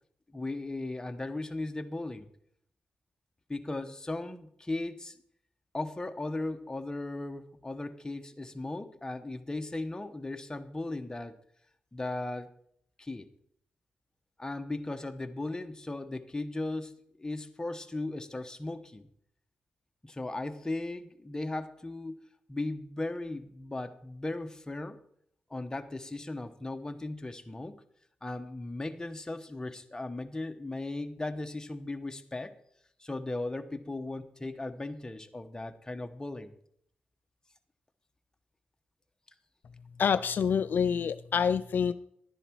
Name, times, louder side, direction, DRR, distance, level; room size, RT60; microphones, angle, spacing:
voice 1, 0.3-2.3 3.5-5.2 5.7-11.3 11.9-12.5 13.0-13.3 14.4-19.1 20.0-22.2 22.5-25.0 25.5-27.8 28.2-32.5 33.0-36.5, left 2 dB, 20° left, 7 dB, 1.0 m, -37 dB
voice 2, 40.0-41.9, left 7 dB, 70° left, 12 dB, 0.4 m, -27 dB
11.0 x 9.9 x 4.6 m, 0.68 s
cardioid pair, 65°, 4 cm